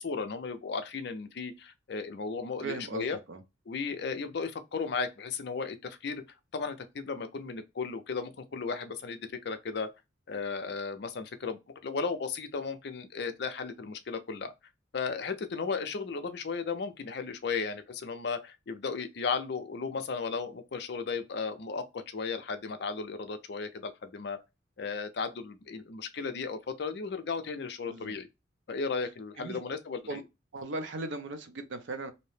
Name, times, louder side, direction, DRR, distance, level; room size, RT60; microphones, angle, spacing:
voice 1, 0.0-3.2 3.7-6.2 6.5-9.2 9.4-9.9 10.3-14.5 14.9-24.4 24.8-28.3 28.7-30.2, left 5 dB, 55° left, 0.4 m, -35 dB
voice 2, 2.6-3.4 27.8-28.2 29.4-29.6 30.1-30.2 30.5-32.1, right 2 dB, 70° right, 0.5 m, -38 dB
2.7 x 2.0 x 3.1 m
head